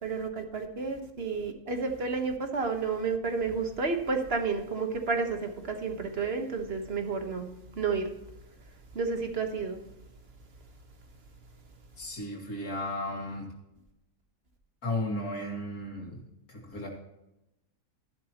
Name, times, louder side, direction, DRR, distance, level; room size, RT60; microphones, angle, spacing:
voice 1, 0.0-7.5 7.8-8.0 8.9-9.8, right 4 dB, 45° right, 5 dB, 1.6 m, -31 dB
voice 2, 12.0-13.5 14.8-16.9, left 1 dB, 90° left, -2 dB, 2.7 m, -35 dB
12.5 x 12.0 x 3.0 m, 0.91 s
omnidirectional pair, 1.5 m